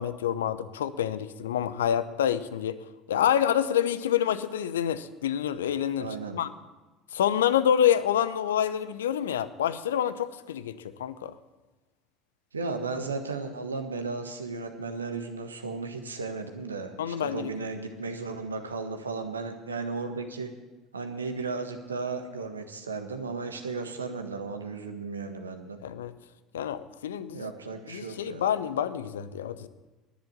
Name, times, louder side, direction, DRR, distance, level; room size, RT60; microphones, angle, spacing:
voice 1, 0.0-2.8 3.1-6.5 7.1-11.3 17.0-17.5 25.8-26.1 26.5-27.5 27.9-29.7, left 9 dB, 75° left, 14 dB, 0.7 m, -27 dB
voice 2, 6.0-6.4 12.5-20.5 20.9-25.8 27.3-28.5, right 4 dB, 85° right, 6 dB, 1.3 m, -35 dB
11.5 x 10.5 x 8.4 m, 1.2 s
figure-of-eight pair, 65°, 0 cm